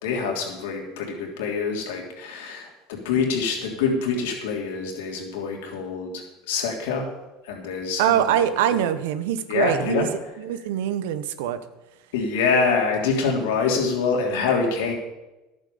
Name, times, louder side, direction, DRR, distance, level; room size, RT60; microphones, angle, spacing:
voice 1, 0.0-7.1 7.4-8.3 8.7-8.9 9.5-10.1 12.1-14.9, left 5 dB, 85° left, 1 dB, 3.2 m, -25 dB
voice 2, 8.0-10.1 10.4-11.6, right 10 dB, 80° right, 12 dB, 1.0 m, -23 dB
11.0 x 9.0 x 7.0 m, 1.0 s
supercardioid pair, 95°, 0 cm